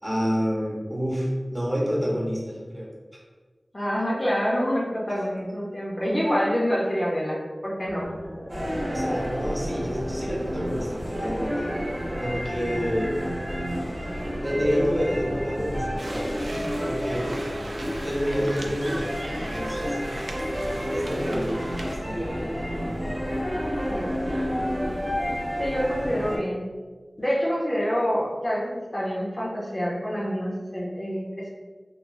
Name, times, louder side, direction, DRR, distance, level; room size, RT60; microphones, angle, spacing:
voice 1, 0.0-2.9 8.9-11.7 12.2-13.1 14.4-16.3 16.8-17.5 18.0-19.1 19.4-20.0 20.9-21.6 21.9-22.5, equal, 15° right, -4 dB, 0.7 m, -28 dB
voice 2, 3.7-8.1 23.9-24.1 25.6-26.6 27.2-31.5, equal, 35° left, -5 dB, 0.5 m, -27 dB
sound 1, 7.9-24.6, equal, 90° right, 0.7 m, -39 dB
sound 2, 8.5-26.4, equal, 35° right, 0.9 m, -30 dB
sound 3, 16.0-22.0, right 1 dB, 65° right, 0.3 m, -40 dB
2.9 x 2.0 x 2.6 m, 1.4 s
wide cardioid pair, 65°, 0 cm